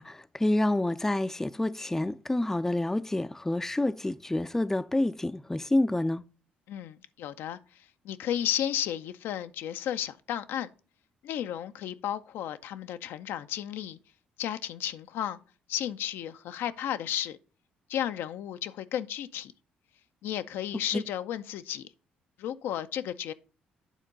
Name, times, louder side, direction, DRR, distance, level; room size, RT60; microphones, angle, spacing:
voice 1, 0.0-6.2 20.9-21.0, left 1 dB, 10° left, 0.4 m, -28 dB
voice 2, 6.7-10.7 11.2-14.0 14.4-15.4 15.7-17.4 17.9-19.5 20.2-21.9 22.4-23.3, left 10 dB, 75° left, 0.4 m, -33 dB
9.1 x 3.6 x 5.3 m
supercardioid pair, 60°, 4 cm